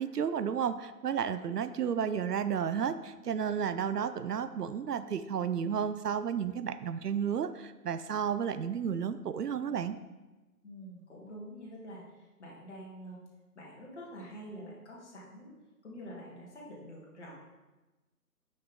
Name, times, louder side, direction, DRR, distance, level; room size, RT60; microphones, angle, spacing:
voice 1, 0.0-10.0, right 7 dB, 80° right, 12 dB, 0.6 m, -32 dB
voice 2, 10.6-12.0 12.4-13.2 13.6-15.5 15.8-17.4, equal, 45° left, -4 dB, 2.2 m, -46 dB
7.2 x 5.8 x 3.5 m, 1.1 s
figure-of-eight pair, 165°, 47 cm